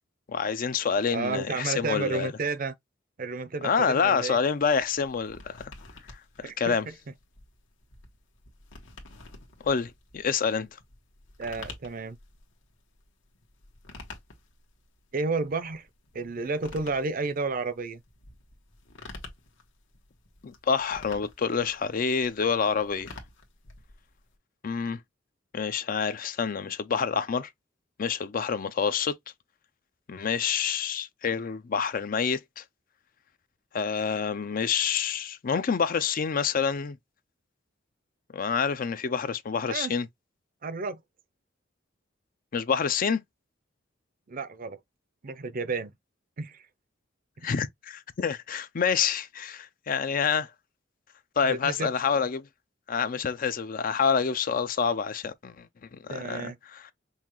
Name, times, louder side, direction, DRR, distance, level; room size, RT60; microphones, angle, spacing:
voice 1, 0.3-2.3 3.6-5.7 6.4-6.9 9.6-10.7 20.4-23.2 24.6-25.0 25.5-27.5 28.0-29.2 30.1-32.6 33.7-37.0 38.3-40.1 42.5-43.2 47.4-50.5 51.4-52.5 52.9-55.7 55.9-56.9, left 6 dB, 45° left, 0.5 m, -27 dB
voice 2, 1.1-2.7 3.2-4.4 6.4-6.9 11.4-12.2 15.1-15.9 16.1-18.0 39.7-39.9 40.6-41.0 44.3-44.8 45.2-45.9 46.4-46.6 51.4-51.9 56.1-56.6, right 3 dB, 45° right, 0.6 m, -31 dB
sound 1, 4.6-24.3, left 3 dB, 75° left, 1.3 m, -49 dB
5.5 x 2.3 x 3.0 m
head